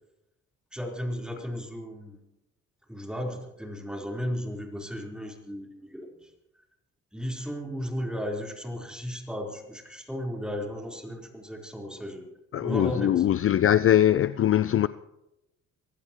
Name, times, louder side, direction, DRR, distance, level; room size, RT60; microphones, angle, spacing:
voice 1, 0.7-2.2 2.9-6.3 7.1-12.2 12.6-13.2, equal, 5° right, 4.0 m, -35 dB
voice 2, 12.5-14.9, left 11 dB, 45° left, 0.5 m, -22 dB
23.5 x 15.5 x 3.1 m
cardioid pair, 90°, 30 cm